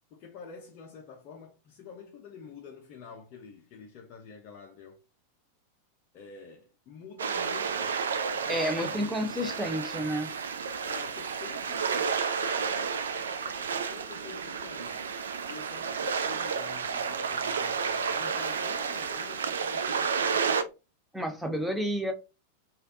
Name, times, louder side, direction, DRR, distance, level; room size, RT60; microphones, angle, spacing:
voice 1, 0.1-5.0 6.1-8.0 8.3-9.2 10.8-15.1 15.5-20.7, left 5 dB, 40° left, 0.5 m, -48 dB
sound 1, 7.2-20.6, right 6 dB, 65° right, 0.3 m, -31 dB
voice 2, 8.5-10.3 21.1-22.1, equal, 5° right, 0.6 m, -30 dB
3.2 x 2.3 x 2.5 m
figure-of-eight pair, 90°, 0 cm